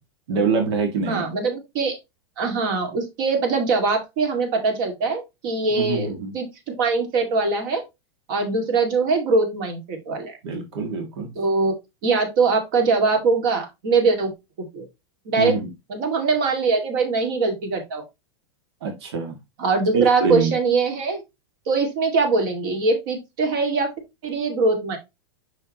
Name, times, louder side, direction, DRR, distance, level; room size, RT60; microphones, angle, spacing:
voice 1, 0.3-1.3 5.8-6.3 10.4-11.3 15.4-15.7 18.8-19.4 19.9-20.5, right 5 dB, 70° right, 3 dB, 2.0 m, -24 dB
voice 2, 1.0-2.0 2.4-7.8 8.3-10.4 11.4-11.7 12.0-14.3 14.7-14.8 15.3-15.6 15.9-18.0 19.6-21.2 21.7-23.9 24.2-25.0, right 4 dB, 50° right, 4 dB, 2.3 m, -22 dB
6.1 x 5.6 x 2.9 m, 0.22 s
supercardioid pair, 170°, 14 cm